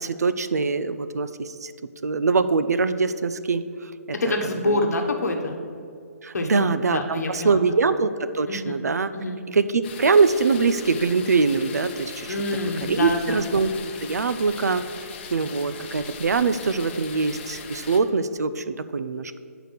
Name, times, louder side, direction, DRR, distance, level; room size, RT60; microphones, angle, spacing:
voice 1, 0.0-1.7 2.0-3.9 4.3-4.4 4.6-4.8 6.2-9.1 9.5-12.4 12.8-13.7 14.0-14.8 15.3-19.4, right 4 dB, 75° right, 12 dB, 0.5 m, -23 dB
voice 2, 4.2-5.6 6.3-7.6 8.5-8.8 9.1-9.4 12.3-13.4, left 2 dB, 70° left, 2 dB, 1.1 m, -26 dB
sound 1, 9.8-18.0, left 6 dB, 40° left, 0.8 m, -39 dB
7.5 x 4.9 x 6.7 m, 2.3 s
figure-of-eight pair, 140°, 9 cm